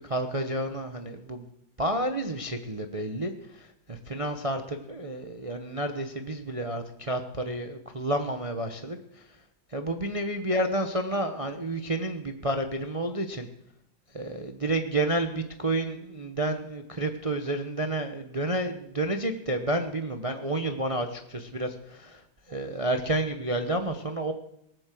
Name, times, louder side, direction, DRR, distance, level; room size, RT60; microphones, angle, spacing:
voice 1, 0.0-1.5 1.8-9.0 9.7-13.5 14.1-22.2 22.5-24.3, right 1 dB, 55° right, 6 dB, 0.3 m, -30 dB
19.5 x 8.0 x 7.6 m, 0.78 s
omnidirectional pair, 2.3 m